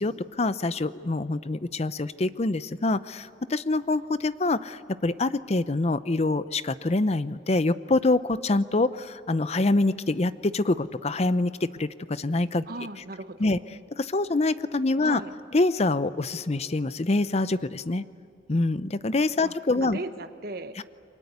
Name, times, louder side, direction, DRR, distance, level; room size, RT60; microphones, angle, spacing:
voice 1, 0.0-12.6 13.4-13.6 14.0-15.2 15.5-18.0 18.5-20.0 20.8-20.9, left 2 dB, 35° left, 14 dB, 0.6 m, -25 dB
voice 2, 12.7-13.6 15.0-15.3 19.4-20.8, right 2 dB, 55° right, 9 dB, 1.2 m, -37 dB
29.0 x 23.5 x 8.2 m, 2.6 s
head